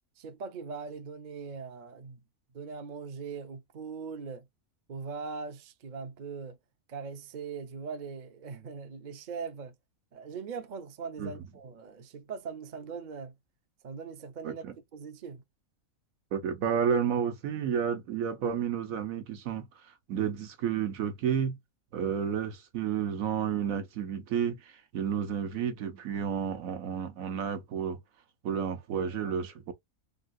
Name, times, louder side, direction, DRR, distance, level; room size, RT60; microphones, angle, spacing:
voice 1, 0.2-2.2 2.5-4.4 4.9-6.6 6.9-9.7 10.1-13.3 13.8-14.6 14.9-15.4, right 5 dB, 45° right, 0.6 m, -40 dB
voice 2, 16.3-19.7 20.1-21.6 21.9-28.0 28.4-29.7, right 7 dB, 75° right, 1.2 m, -31 dB
3.7 x 2.2 x 2.5 m
omnidirectional pair, 1.5 m